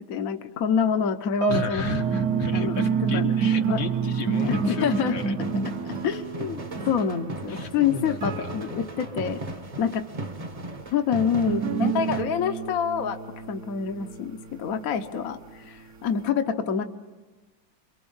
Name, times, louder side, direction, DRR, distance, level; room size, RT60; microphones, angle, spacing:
voice 1, 0.0-1.9 2.3-3.4 3.7-3.8 4.4-5.2 6.0-6.6 6.8-9.4 9.8-10.0 10.9-13.2 13.5-16.8, left 7 dB, 55° left, 6 dB, 1.3 m, -27 dB
Piano, 1.4-4.1 4.3-4.7 5.4-5.6, right 9 dB, 70° right, 1.5 m, -34 dB
voice 2, 1.5-5.4 5.9-6.0 7.5-8.6, left 5 dB, 75° left, 5 dB, 2.0 m, -34 dB
sound 1, 1.9-9.2 11.5-15.5, right 6 dB, 55° right, 1.4 m, -29 dB
sound 2, 4.3-12.2, right 2 dB, 25° right, 1.1 m, -37 dB
27.0 x 23.0 x 5.6 m, 1.2 s
omnidirectional pair, 2.1 m